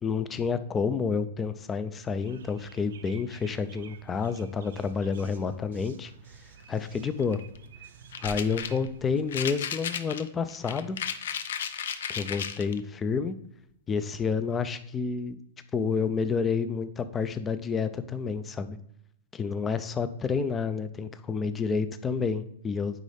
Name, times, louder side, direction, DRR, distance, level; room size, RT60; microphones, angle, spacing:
voice 1, 0.0-6.1 6.7-7.4 8.2-11.0 12.1-13.3 13.9-15.4 15.7-18.8 19.3-23.0, left 5 dB, 15° left, 12 dB, 0.4 m, -29 dB
sound 1, 2.2-9.2, right 7 dB, 85° right, 0.7 m, -50 dB
sound 2, 7.2-7.6 8.1-8.9 9.3-12.8, left 8 dB, 85° left, 0.6 m, -34 dB
9.3 x 3.7 x 3.4 m, 0.71 s
supercardioid pair, 165°, 0 cm